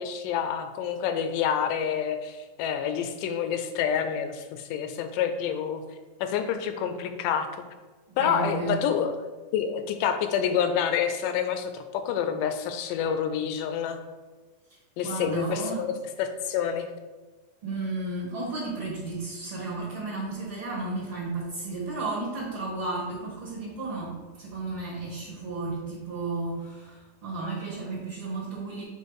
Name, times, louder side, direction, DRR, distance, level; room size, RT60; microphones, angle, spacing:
voice 1, 0.0-5.8 6.2-7.6 8.2-9.1 9.5-14.0 15.0-15.9 16.2-16.9, left 8 dB, 80° left, 8 dB, 2.1 m, -28 dB
voice 2, 8.1-8.9 15.0-15.9 17.6-28.8, right 3 dB, 55° right, -6 dB, 1.6 m, -33 dB
7.4 x 3.3 x 4.7 m, 1.3 s
omnidirectional pair, 4.1 m